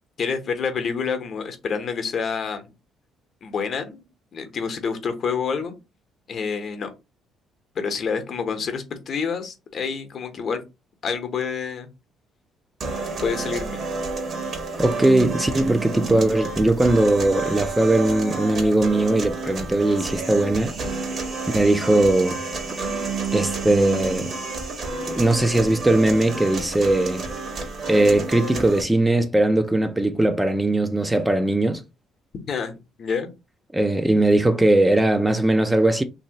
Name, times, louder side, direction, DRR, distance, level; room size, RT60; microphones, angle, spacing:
voice 1, 0.2-2.7 3.4-4.1 4.3-5.8 6.3-6.9 7.7-10.6 11.0-11.9 13.2-14.0 32.5-32.7 33.0-33.3, left 6 dB, 50° left, 0.8 m, -28 dB
sound 1, 12.8-28.8, right 3 dB, 50° right, 1.1 m, -30 dB
voice 2, 14.8-20.7 21.5-22.4 22.7-22.9 23.3-24.3 25.1-27.2 27.9-31.8 33.7-36.0, right 1 dB, 10° right, 0.4 m, -19 dB
2.9 x 2.7 x 2.8 m
cardioid pair, 90°, 0 cm